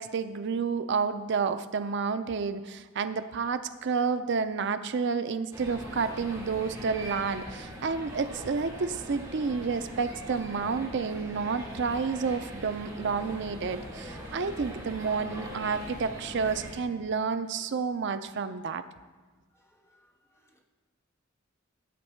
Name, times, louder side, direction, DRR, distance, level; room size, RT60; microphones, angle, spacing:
voice 1, 0.0-18.8, right 5 dB, 60° right, 0.5 m, -30 dB
sound 1, 5.5-16.7, equal, 15° right, 4.0 m, -42 dB
voice 2, 19.5-20.6, equal, 15° left, 1.4 m, -67 dB
16.0 x 8.0 x 4.4 m
head